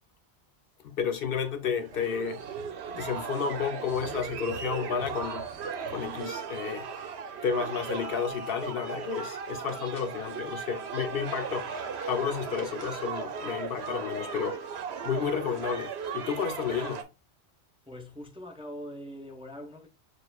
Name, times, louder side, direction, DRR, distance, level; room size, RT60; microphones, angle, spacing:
voice 1, 0.8-2.4 2.9-5.4 5.9-6.9 7.4-11.7 12.1-14.6 15.0-17.0, left 7 dB, 65° left, 0.7 m, -31 dB
sound 1, 1.8-17.0, right 6 dB, 75° right, 0.9 m, -37 dB
voice 2, 17.9-19.9, equal, 5° right, 0.6 m, -42 dB
6.5 x 2.4 x 2.2 m
omnidirectional pair, 1.1 m